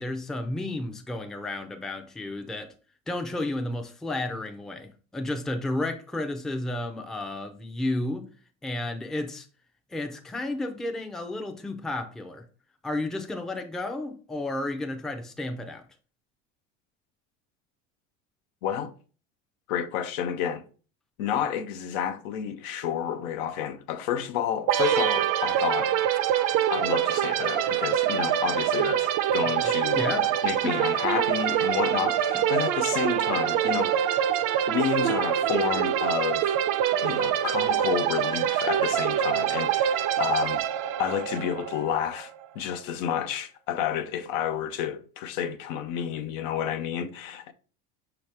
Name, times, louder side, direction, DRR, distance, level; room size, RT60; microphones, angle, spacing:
voice 1, 0.0-2.7 3.1-8.3 8.6-9.5 9.9-12.4 12.8-15.8 29.6-30.3 30.6-30.8, left 2 dB, ahead, 0.4 m, -32 dB
voice 2, 18.6-18.9 19.7-20.6 21.2-26.0 26.7-34.1 34.7-36.6 37.0-40.6 41.0-47.5, left 9 dB, 80° left, 0.6 m, -30 dB
sound 1, 24.7-42.3, right 10 dB, 55° right, 0.5 m, -25 dB
5.6 x 2.9 x 3.2 m
supercardioid pair, 100°, 39 cm